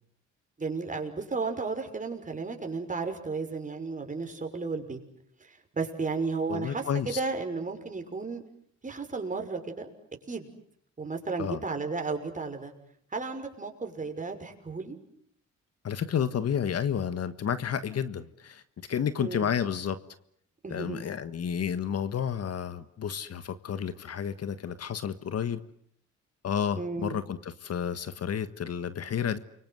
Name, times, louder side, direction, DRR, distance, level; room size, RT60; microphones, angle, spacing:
voice 1, 0.6-5.0 5.7-8.4 8.8-9.9 10.3-10.5 11.0-12.7 13.1-15.0 19.2-19.5 20.6-21.0 26.8-27.2, right 4 dB, 25° right, 4 dB, 6.1 m, -33 dB
voice 2, 6.5-7.2 11.4-11.6 15.8-18.6 18.9-20.0 20.7-25.6 26.4-29.4, left 8 dB, 55° left, 12 dB, 1.6 m, -31 dB
29.5 x 24.0 x 8.0 m, 0.69 s
cardioid pair, 90°, 30 cm